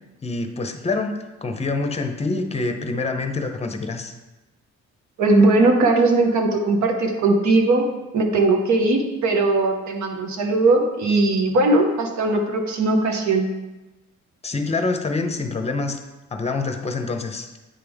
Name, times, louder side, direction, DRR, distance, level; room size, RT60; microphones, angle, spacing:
voice 1, 0.2-4.1 14.4-16.0 16.3-17.5, left 3 dB, 20° left, 6 dB, 0.7 m, -26 dB
voice 2, 5.2-7.8 8.1-13.5, right 2 dB, 70° right, 4 dB, 1.0 m, -19 dB
9.1 x 3.4 x 3.5 m, 1.1 s
cardioid pair, 90°, 30 cm